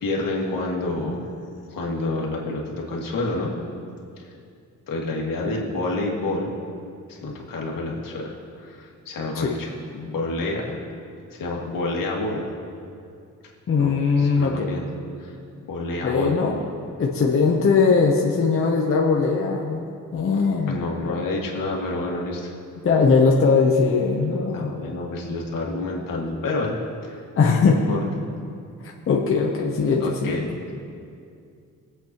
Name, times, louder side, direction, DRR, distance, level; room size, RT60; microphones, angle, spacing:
voice 1, 0.0-1.3 1.7-3.6 4.2-4.3 4.9-6.5 7.1-10.8 11.3-12.4 13.8-14.8 15.2-15.4 15.7-16.4 20.7-22.5 24.5-27.2 27.6-28.0 30.0-30.5, left 2 dB, 80° left, -2 dB, 2.1 m, -28 dB
voice 2, 13.7-14.7 16.0-16.6 17.0-19.8 20.1-20.8 22.8-24.7 27.4-27.8 29.1-30.4, left 4 dB, 40° left, -1 dB, 0.9 m, -20 dB
22.0 x 8.0 x 3.0 m, 2.4 s
wide cardioid pair, 170°, 33 cm